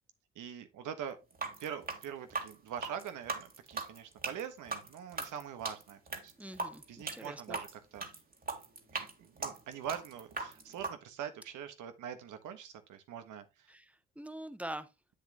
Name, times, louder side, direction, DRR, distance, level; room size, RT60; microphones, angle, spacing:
voice 1, 0.3-1.2 1.6-6.6 6.9-8.1 8.9-13.7, right 8 dB, 80° right, 1.5 m, -43 dB
sound 1, 1.3-10.9, right 3 dB, 30° right, 2.0 m, -39 dB
voice 2, 6.4-7.6 13.7-13.8 14.2-14.9, right 1 dB, 5° right, 0.9 m, -44 dB
7.7 x 7.3 x 3.0 m
cardioid pair, 90°, 30 cm